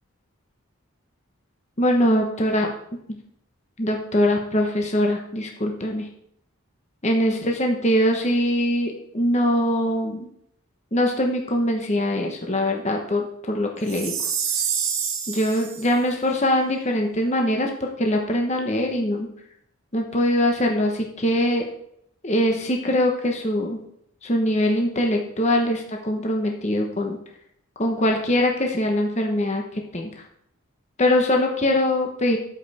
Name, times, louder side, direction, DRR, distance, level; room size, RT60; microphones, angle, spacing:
voice 1, 1.8-2.7 3.8-6.1 7.0-10.3 10.9-14.1 15.3-19.3 19.9-21.7 22.2-23.8 24.2-27.2 27.8-30.1 31.0-32.4, left 1 dB, 30° left, 2 dB, 1.1 m, -22 dB
Chime, 13.9-15.9, right 7 dB, 70° right, 1.5 m, -27 dB
13.0 x 5.3 x 4.2 m, 0.73 s
head